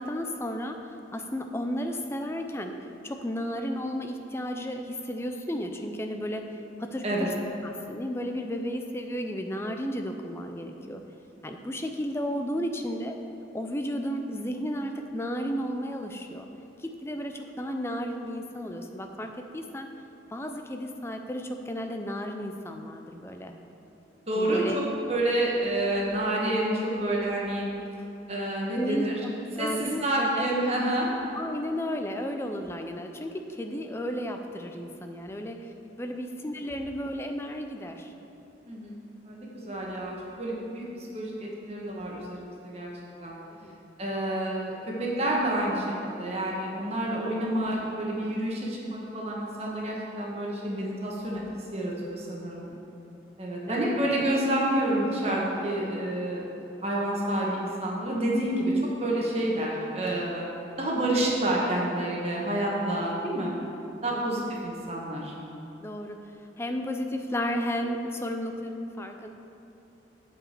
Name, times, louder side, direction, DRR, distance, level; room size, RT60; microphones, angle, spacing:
voice 1, 0.0-2.8 3.0-6.5 6.8-7.3 7.6-11.0 11.4-13.2 13.5-16.5 16.8-19.9 20.3-23.5 24.4-24.8 28.8-30.5 31.4-38.1 43.5-43.8 44.1-44.3 52.4-52.8 53.7-53.9 64.0-64.2 65.8-66.3 66.6-69.3, equal, 15° left, 5 dB, 0.5 m, -33 dB
voice 2, 24.3-24.8 25.1-27.6 28.3-29.2 29.6-31.1 38.7-39.0 39.2-42.9 43.2-43.4 44.0-51.4 51.7-52.6 53.4-56.4 56.8-58.7 59.0-60.5 60.8-63.5 64.0-65.3, right 1 dB, 35° right, -4 dB, 1.3 m, -29 dB
8.0 x 4.9 x 7.4 m, 2.9 s
head